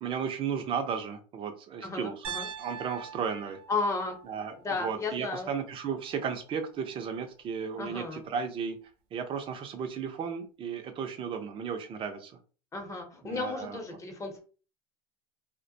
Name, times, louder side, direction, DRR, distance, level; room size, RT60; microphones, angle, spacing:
voice 1, 0.0-2.2 2.6-3.6 4.3-8.8 9.1-12.3 13.2-13.8, right 6 dB, 40° right, 7 dB, 0.5 m, -34 dB
voice 2, 1.8-2.5 3.7-4.2 4.6-5.5 7.8-8.2 12.7-14.4, left 3 dB, 25° left, 3 dB, 0.8 m, -34 dB
Piano, 2.2-6.3, right 7 dB, 85° right, 0.6 m, -44 dB
2.2 x 2.1 x 2.6 m, 0.37 s
supercardioid pair, 105°, 13 cm